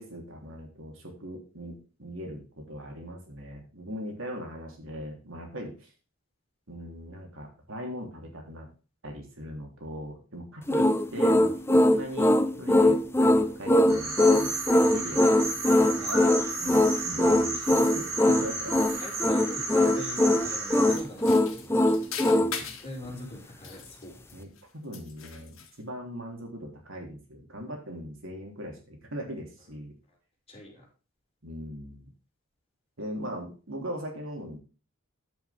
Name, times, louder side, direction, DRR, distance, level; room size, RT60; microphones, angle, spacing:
voice 1, 0.0-5.9 6.7-8.7 9.0-16.0 16.6-18.7 22.3-22.7 24.3-24.5 24.7-29.9 31.4-32.1 33.0-34.6, equal, 65° right, 1 dB, 3.3 m, -40 dB
sound 1, 10.7-22.5, left 1 dB, 10° left, 0.6 m, -21 dB
sound 2, 13.9-21.0, right 2 dB, 80° right, 6.0 m, -33 dB
voice 2, 16.0-16.5 19.0-21.8 22.5-24.2 30.5-30.9, equal, 30° left, -3 dB, 5.6 m, -43 dB
sound 3, 20.9-22.9 23.5-24.6 24.9-25.8, left 7 dB, 70° left, 2.3 m, -40 dB
10.0 x 8.5 x 3.5 m, 0.35 s
head